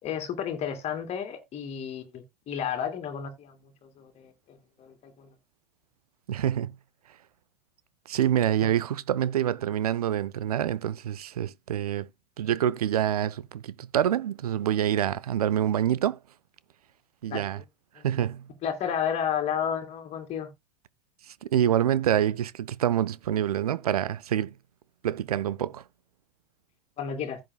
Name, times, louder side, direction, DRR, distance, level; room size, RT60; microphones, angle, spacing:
voice 1, 0.0-3.5 3.8-5.3 17.3-17.6 18.0-18.1 18.6-20.5 27.0-27.4, left 8 dB, 30° left, 2.6 m, -32 dB
voice 2, 6.3-6.8 8.1-12.1 12.4-16.2 17.2-17.6 18.0-18.5 21.4-24.5 25.0-25.8, right 10 dB, 65° right, 0.6 m, -26 dB
15.0 x 6.1 x 2.3 m
figure-of-eight pair, 85°, 21 cm